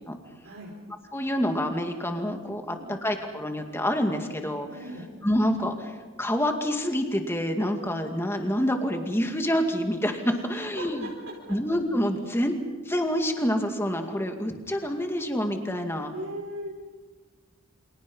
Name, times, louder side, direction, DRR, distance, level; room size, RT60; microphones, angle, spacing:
voice 1, 1.1-2.8 3.0-4.7 5.2-11.1 11.5-12.5 12.9-16.1, equal, 10° left, 4 dB, 2.3 m, -27 dB
voice 2, 2.6-3.0 4.7-5.0 10.3-11.1 16.1-16.7, right 1 dB, 70° right, -3 dB, 5.1 m, -39 dB
29.5 x 27.0 x 5.6 m, 1.4 s
head